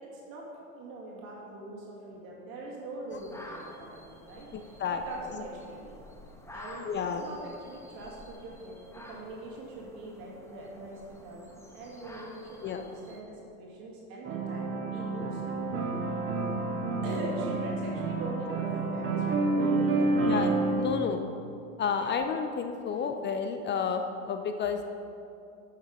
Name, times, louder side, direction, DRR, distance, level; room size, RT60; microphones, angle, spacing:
voice 1, 0.1-0.4 0.8-4.8 5.0-6.0 6.5-6.9 7.2-15.5 17.0-20.1 22.0-22.1, right 2 dB, 55° right, -3 dB, 2.3 m, -42 dB
sound 1, 3.1-13.2, left 1 dB, 5° left, 1.1 m, -50 dB
voice 2, 4.5-5.0 6.8-7.2 12.6-12.9 20.2-21.2 21.8-24.8, left 6 dB, 25° left, 7 dB, 0.5 m, -31 dB
sound 2, 14.2-20.7, right 3 dB, 30° right, 1.4 m, -29 dB
9.1 x 6.6 x 5.4 m, 2.7 s
hypercardioid pair, 100°, 42 cm